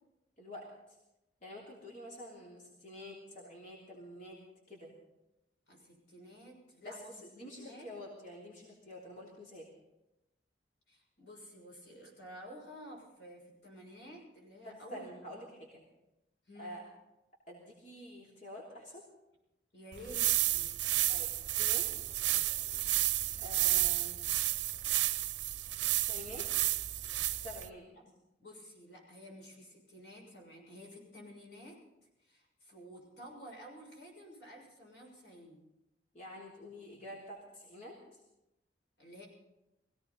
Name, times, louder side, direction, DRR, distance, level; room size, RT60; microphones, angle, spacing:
voice 1, 0.4-1.0 1.4-4.4 4.7-4.9 6.8-9.7 14.6-15.8 16.6-16.8 17.5-19.0 21.1-22.2 23.4-24.2 26.0-26.8 27.4-27.8 36.1-38.2, left 1 dB, 45° left, -5 dB, 3.2 m, -48 dB
voice 2, 5.7-7.9 10.9-15.4 16.5-16.8 19.7-20.3 20.6-20.7 28.0-28.1 28.4-31.8 32.2-35.6 39.0-39.3, equal, 80° left, -1 dB, 6.7 m, -52 dB
sound 1, 19.9-27.7, right 15 dB, 85° right, 0.6 m, -31 dB
21.5 x 16.5 x 4.1 m, 0.94 s
head